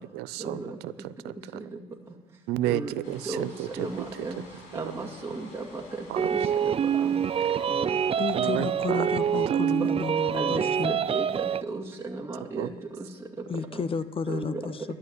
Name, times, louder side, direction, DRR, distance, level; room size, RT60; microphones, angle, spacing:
voice 1, 0.0-1.6 2.5-4.3 4.7-4.9 6.1-6.2 7.4-7.6 8.3-9.0 9.5-9.6 12.6-12.7, right 15 dB, 80° right, 17 dB, 0.6 m, -33 dB
sound 1, 3.0-10.6, left 2 dB, 90° left, 3.9 m, -51 dB
voice 2, 3.8-4.4 4.7-7.2 7.7-8.0 10.3-11.3 11.6-12.7 13.4-13.5 13.7-13.8 14.3-14.6, right 3 dB, 15° right, -3 dB, 2.2 m, -35 dB
sound 2, 6.2-11.6, right 8 dB, 35° right, 0.5 m, -26 dB
voice 3, 8.2-10.9 13.5-14.8, left 5 dB, 35° left, 15 dB, 0.8 m, -32 dB
13.0 x 8.7 x 9.4 m, 1.2 s
supercardioid pair, 85°, 16 cm